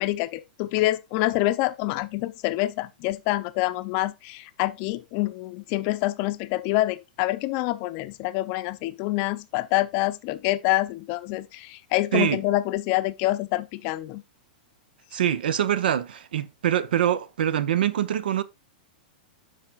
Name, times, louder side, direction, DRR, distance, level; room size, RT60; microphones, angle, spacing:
voice 1, 0.0-14.2, left 17 dB, 35° left, 0.5 m, -26 dB
voice 2, 15.1-18.4, right 10 dB, 85° right, 0.7 m, -24 dB
11.5 x 4.8 x 2.4 m
supercardioid pair, 160°, 5 cm